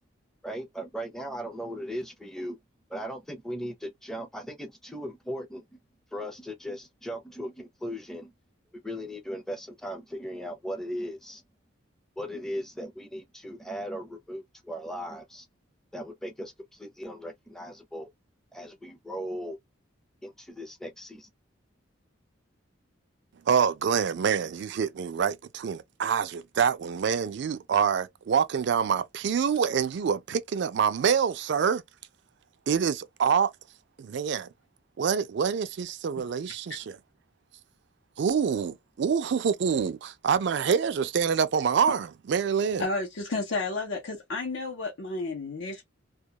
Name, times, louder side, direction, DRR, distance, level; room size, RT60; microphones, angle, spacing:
voice 1, 0.4-2.6 2.9-5.8 6.1-8.3 8.8-11.4 12.2-15.5 15.9-18.1 18.5-19.6 20.2-21.3, equal, ahead, 0.5 m, -37 dB
voice 2, 23.5-31.8 32.7-33.5 34.0-34.5 35.0-37.0 38.2-42.8, right 7 dB, 60° right, 0.3 m, -26 dB
voice 3, 42.8-45.8, left 3 dB, 65° left, 0.7 m, -32 dB
2.2 x 2.2 x 2.8 m
head